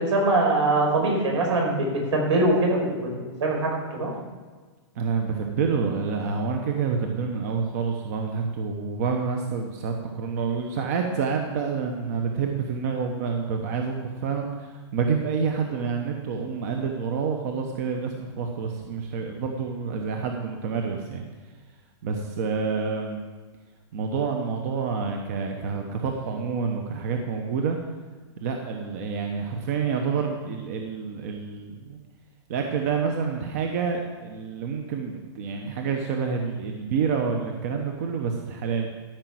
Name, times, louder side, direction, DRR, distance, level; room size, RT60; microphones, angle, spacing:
voice 1, 0.0-4.1, right 2 dB, 75° right, -1 dB, 4.8 m, -23 dB
voice 2, 5.0-21.2 22.0-23.2 23.9-27.8 28.4-32.0 32.5-38.9, right 5 dB, 35° right, 3 dB, 0.9 m, -28 dB
13.5 x 5.9 x 7.7 m, 1.4 s
hypercardioid pair, 175°, 15 cm